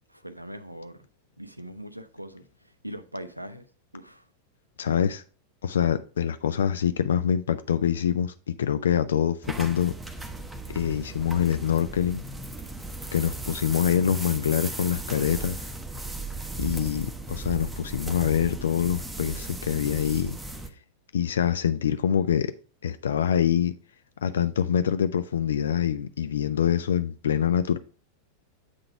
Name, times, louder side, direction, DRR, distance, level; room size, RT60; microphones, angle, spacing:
voice 1, 0.1-1.1 1.4-2.4 2.8-3.6 3.9-4.2, equal, 85° right, 0.5 m, -40 dB
voice 2, 4.8-5.2 5.6-9.9 10.7-12.3 13.1-15.7 16.6-20.4 21.1-22.5 22.8-23.7 24.2-27.8, left 8 dB, 65° left, 0.3 m, -25 dB
sound 1, 9.4-20.7, right 2 dB, 10° right, 0.7 m, -36 dB
7.8 x 3.8 x 4.5 m
figure-of-eight pair, 90°, 0 cm